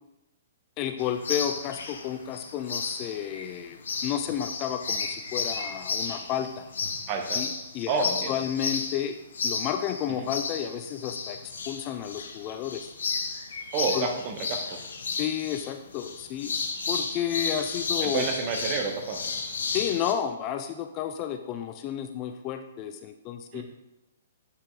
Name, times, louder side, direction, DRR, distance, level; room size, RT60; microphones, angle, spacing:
voice 1, 0.8-6.6 7.4-9.2 9.4-11.4 11.7-12.9 13.9-14.1 15.2-16.5 16.9-18.2 19.7-23.6, left 10 dB, 30° left, 7 dB, 0.3 m, -31 dB
sound 1, 1.0-20.1, left 4 dB, 60° left, 0.7 m, -33 dB
voice 2, 7.1-7.4 7.9-8.4 10.1-10.3 13.7-14.8 18.0-19.4 23.5-23.6, right 5 dB, 30° right, 4 dB, 0.8 m, -30 dB
7.8 x 5.5 x 2.4 m, 0.95 s
figure-of-eight pair, 115°, 0 cm